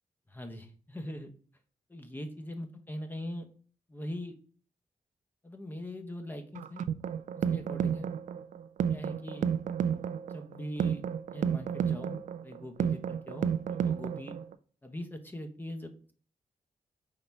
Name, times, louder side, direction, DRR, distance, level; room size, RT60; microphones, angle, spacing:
voice 1, 0.3-1.3 1.9-3.5 3.9-4.3 5.4-6.8 7.4-8.1 8.9-9.5 10.3-11.0 11.3-14.3 14.8-15.9, left 1 dB, 15° left, 6 dB, 1.0 m, -41 dB
sound 1, 6.5-14.5, right 8 dB, 80° right, 0.4 m, -32 dB
4.5 x 3.9 x 5.3 m, 0.43 s
wide cardioid pair, 115°, 13 cm